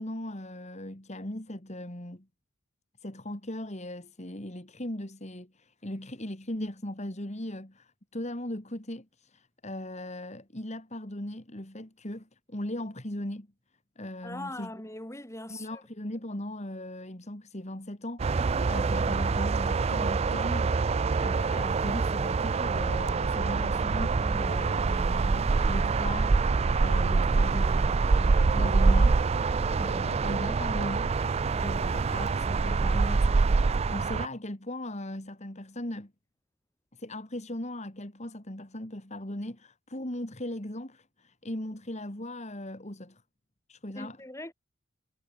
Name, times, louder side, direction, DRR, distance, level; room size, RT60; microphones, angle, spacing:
voice 1, 0.0-2.3 3.0-13.5 14.0-14.7 15.5-20.8 21.2-31.2 31.5-36.1 36.9-43.2 43.7-44.2, left 1 dB, 30° left, 2.6 m, -38 dB
voice 2, 14.2-15.8 43.9-44.5, left 1 dB, 15° left, 5.0 m, -41 dB
sound 1, 18.2-34.3, right 4 dB, 30° right, 0.3 m, -25 dB
head